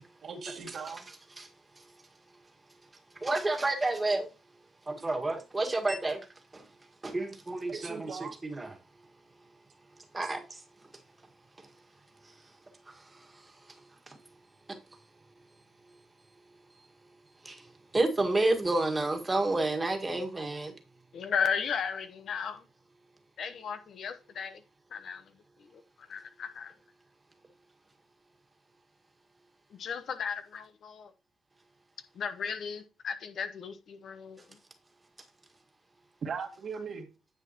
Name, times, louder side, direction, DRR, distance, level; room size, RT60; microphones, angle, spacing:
voice 1, 0.2-1.1 7.7-8.3 36.2-37.1, right 5 dB, 55° right, 1.9 m, -39 dB
voice 2, 3.2-4.3 4.9-6.3 6.5-6.7 7.0-8.7 10.1-10.6 11.6-11.7 12.2-12.3 12.9-13.8 14.1-14.2 14.7-14.8 16.7-16.9 17.4-20.7, right 2 dB, 20° right, 1.8 m, -31 dB
voice 3, 21.1-22.6 23.4-24.6 24.9-25.2 25.7-26.7 29.7-31.1 32.1-34.4, left 6 dB, 60° left, 1.0 m, -35 dB
9.6 x 7.2 x 3.0 m
cardioid pair, 90°, 0 cm